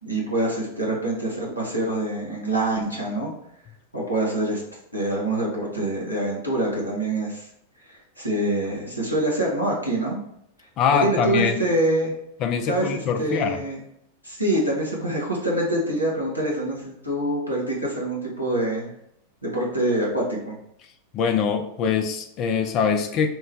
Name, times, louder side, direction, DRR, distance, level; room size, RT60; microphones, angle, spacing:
voice 1, 0.0-3.3 3.9-4.6 4.9-7.5 7.9-10.2 10.9-12.1 12.7-13.8 14.2-18.9 19.4-20.5, right 1 dB, 90° right, -4 dB, 1.0 m, -25 dB
voice 2, 10.8-11.6 12.4-13.6 21.1-23.3, left 6 dB, 35° left, 6 dB, 0.4 m, -23 dB
3.0 x 2.2 x 3.5 m, 0.74 s
figure-of-eight pair, 90°, 0 cm